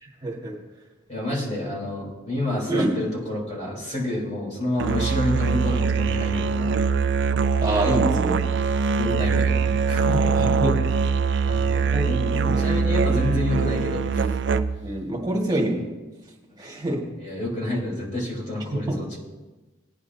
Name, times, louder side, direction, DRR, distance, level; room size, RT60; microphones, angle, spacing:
voice 1, 0.0-0.6 2.7-2.9 7.6-8.4 10.4-10.8 11.9-12.9 14.8-15.8 16.6-17.0 18.9-19.0, right 1 dB, 20° right, -2 dB, 1.8 m, -26 dB
voice 2, 1.1-6.7 9.0-10.5 11.4-11.7 12.0-14.3 17.2-19.2, left 1 dB, 35° left, -5 dB, 4.0 m, -28 dB
Musical instrument, 4.8-14.9, right 5 dB, 65° right, 0.5 m, -23 dB
19.0 x 9.7 x 2.8 m, 1.2 s
head